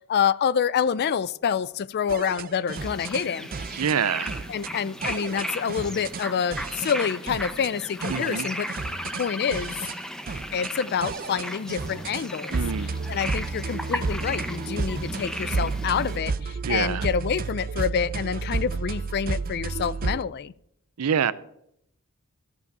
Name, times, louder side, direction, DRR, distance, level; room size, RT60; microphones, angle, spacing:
voice 1, 0.0-3.7 4.5-8.7 9.2-9.7 10.5-12.6 13.1-20.5, left 7 dB, 45° left, 0.4 m, -27 dB
sound 1, 2.1-3.2 3.5-4.0 4.3-4.7 5.0-6.3 6.5-7.0 7.3-7.7 8.0-9.3 9.5-10.0 10.3-10.7 11.0-12.3 12.5-20.2, right 4 dB, 40° right, 0.4 m, -32 dB
sound 2, 2.7-16.2, equal, 5° left, 0.7 m, -36 dB
voice 2, 3.7-4.3 8.1-8.5 12.5-13.0 16.6-17.1 21.0-21.3, right 7 dB, 85° right, 0.5 m, -26 dB
14.0 x 5.4 x 6.6 m
head